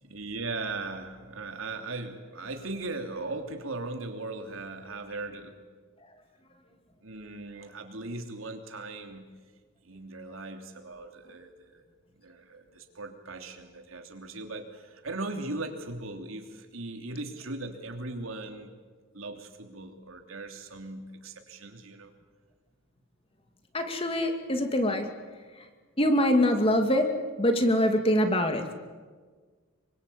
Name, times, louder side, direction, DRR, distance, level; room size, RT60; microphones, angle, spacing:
voice 1, 0.0-5.7 7.0-9.2 9.8-11.8 12.1-18.7 19.1-22.1, right 2 dB, 80° right, 5 dB, 3.1 m, -38 dB
voice 2, 23.7-25.1 25.6-25.7 26.0-28.7, left 1 dB, 25° left, 5 dB, 2.4 m, -24 dB
27.0 x 24.0 x 8.6 m, 1.5 s
head